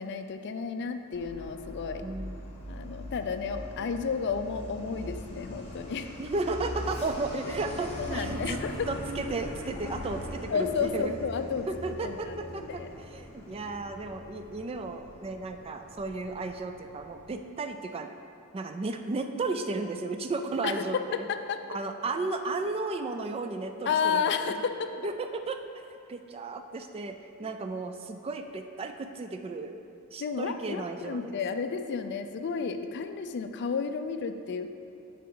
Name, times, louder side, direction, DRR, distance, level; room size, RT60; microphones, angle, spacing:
voice 1, 0.0-2.0 2.7-6.1 8.0-8.7 10.5-12.9 20.6-21.6 23.9-24.9 30.2-34.7, left 5 dB, 50° left, 8 dB, 0.4 m, -32 dB
Truck, 1.1-17.4, equal, 30° left, 1.1 m, -41 dB
voice 2, 2.0-2.4 6.2-8.6 8.9-11.2 11.7-18.1 18.5-21.3 21.7-24.5 25.0-25.6 26.1-29.8 30.1-31.4, right 3 dB, 25° right, 6 dB, 0.3 m, -34 dB
10.5 x 4.3 x 3.8 m, 2.5 s
head